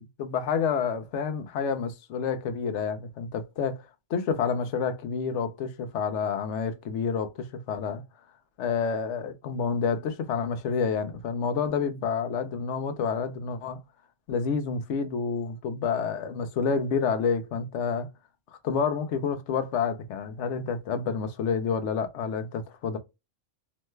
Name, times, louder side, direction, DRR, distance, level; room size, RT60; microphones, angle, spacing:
voice 1, 0.0-3.8 4.1-8.0 8.6-13.8 14.3-18.1 18.6-23.0, left 6 dB, 70° left, 0.9 m, -29 dB
3.1 x 2.1 x 3.1 m
omnidirectional pair, 1.3 m